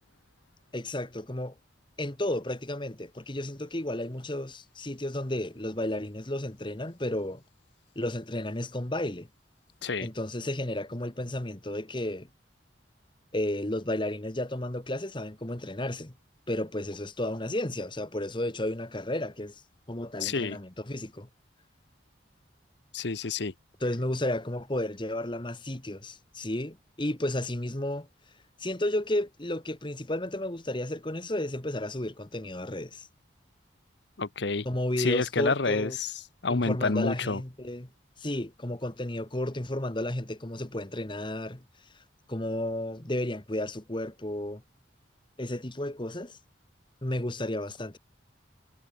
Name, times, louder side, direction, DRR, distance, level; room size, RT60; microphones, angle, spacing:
voice 1, 0.7-1.5 2.0-7.4 7.9-9.3 10.0-12.3 13.3-16.1 16.5-19.6 19.9-21.3 23.8-28.1 28.6-33.1 34.6-36.0 36.5-37.9 38.2-41.6 42.3-44.6 45.4-46.4 47.0-48.0, left 1 dB, 25° left, 1.5 m, -32 dB
voice 2, 20.2-20.6 22.9-23.5 34.2-34.7 35.0-36.1 36.4-37.4, left 4 dB, 65° left, 1.0 m, -28 dB
head